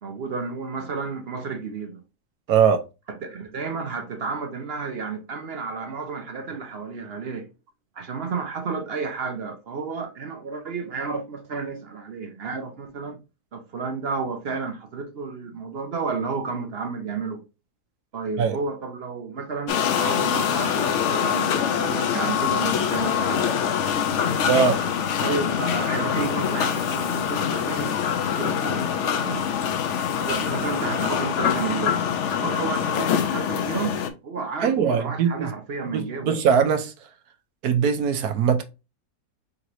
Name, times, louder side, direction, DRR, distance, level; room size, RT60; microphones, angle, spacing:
voice 1, 0.0-2.0 3.1-7.5 7.9-13.2 13.5-17.4 18.1-23.5 24.5-24.9 25.2-29.5 30.2-32.1 32.4-33.9 34.2-36.3, right 4 dB, 50° right, 0.8 m, -31 dB
voice 2, 2.5-2.8 18.4-18.6 24.5-24.7 34.6-35.5 35.9-36.9 37.6-38.6, right 7 dB, 75° right, 1.2 m, -21 dB
sound 1, 19.7-34.1, left 8 dB, 65° left, 0.8 m, -24 dB
4.5 x 3.9 x 2.6 m
omnidirectional pair, 1.7 m